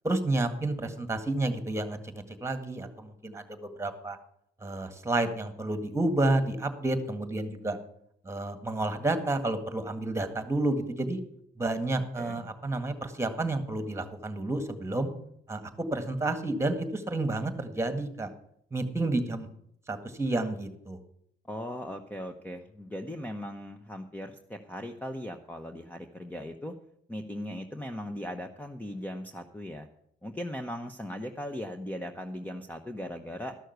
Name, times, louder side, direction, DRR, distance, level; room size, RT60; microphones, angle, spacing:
voice 1, 0.0-4.2 4.6-7.8 8.3-11.2 11.6-15.1 15.5-18.3 18.7-19.5 19.9-21.0, right 2 dB, 15° right, 8 dB, 1.8 m, -30 dB
voice 2, 12.0-12.4 21.5-26.7 27.1-29.9 30.2-33.6, left 1 dB, 10° left, 6 dB, 0.9 m, -38 dB
13.0 x 6.4 x 8.0 m, 0.72 s
cardioid pair, 90°, 20 cm